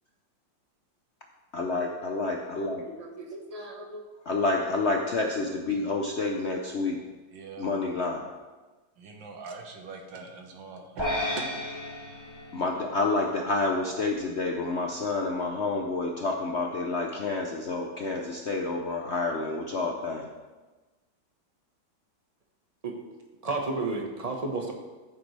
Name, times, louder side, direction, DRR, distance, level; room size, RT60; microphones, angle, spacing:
voice 1, 1.5-3.0 4.3-7.0 7.6-8.3 12.5-20.3, left 3 dB, 55° left, 1 dB, 0.8 m, -29 dB
voice 2, 3.0-4.0 22.8-23.0 23.4-24.7, right 3 dB, 25° right, 1 dB, 1.2 m, -32 dB
voice 3, 7.3-7.7 9.0-11.5, right 4 dB, 90° right, 3 dB, 1.9 m, -42 dB
sound 1, 11.0-13.5, left 1 dB, 10° left, 2.8 m, -33 dB
13.5 x 7.3 x 3.3 m, 1.2 s
omnidirectional pair, 2.0 m